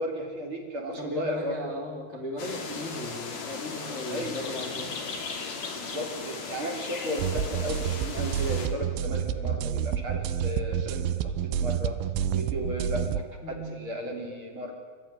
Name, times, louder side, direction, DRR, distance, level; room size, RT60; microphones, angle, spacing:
voice 1, 0.0-1.7 4.1-4.3 5.7-12.0 12.3-13.2 13.5-14.7, equal, 35° right, 1 dB, 3.9 m, -34 dB
voice 2, 1.0-4.9 13.4-13.8, left 1 dB, 20° left, 0 dB, 2.3 m, -36 dB
sound 1, 2.4-8.7, left 4 dB, 50° left, 3.4 m, -37 dB
sound 2, 7.2-13.2, right 9 dB, 80° right, 2.6 m, -29 dB
28.5 x 13.5 x 10.0 m, 1.5 s
omnidirectional pair, 4.5 m